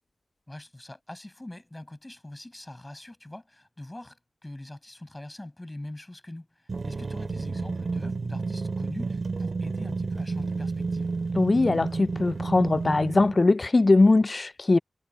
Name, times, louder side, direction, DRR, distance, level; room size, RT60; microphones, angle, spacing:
voice 1, 0.5-11.1, left 1 dB, 20° left, 6.1 m, -43 dB
sound 1, 6.7-13.4, right 4 dB, 55° right, 3.6 m, -31 dB
voice 2, 11.4-14.8, left 3 dB, 40° left, 0.4 m, -21 dB
cardioid pair, 60°, 0 cm